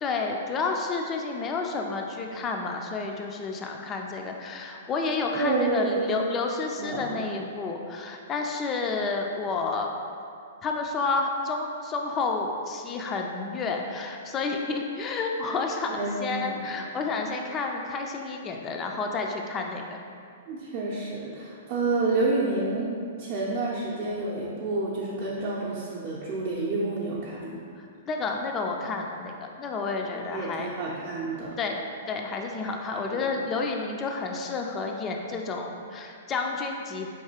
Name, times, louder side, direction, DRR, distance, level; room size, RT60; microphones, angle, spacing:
voice 1, 0.0-9.9 10.6-20.0 27.8-30.7 31.6-31.8 32.1-37.1, left 4 dB, 25° left, 2 dB, 0.3 m, -30 dB
voice 2, 5.3-6.1 6.8-7.3 15.9-16.6 20.5-27.6 30.1-31.6 33.0-33.2, right 3 dB, 45° right, -8 dB, 0.6 m, -29 dB
4.7 x 2.9 x 2.8 m, 2.4 s
hypercardioid pair, 115°, 0 cm